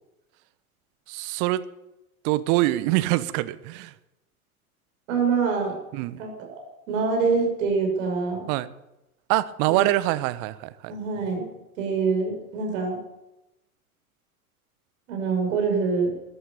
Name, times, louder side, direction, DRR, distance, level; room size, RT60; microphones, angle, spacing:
voice 1, 1.1-1.7 2.2-3.9 5.9-6.2 8.5-8.7 9.3-10.9, right 17 dB, 45° right, 15 dB, 1.1 m, -24 dB
voice 2, 5.1-5.7 6.2-6.6 6.9-8.4 9.7-9.8 10.9-11.5 11.8-13.0 15.1-16.1, right 5 dB, 60° right, 2 dB, 6.5 m, -25 dB
15.0 x 11.5 x 7.5 m, 0.91 s
figure-of-eight pair, 90°, 44 cm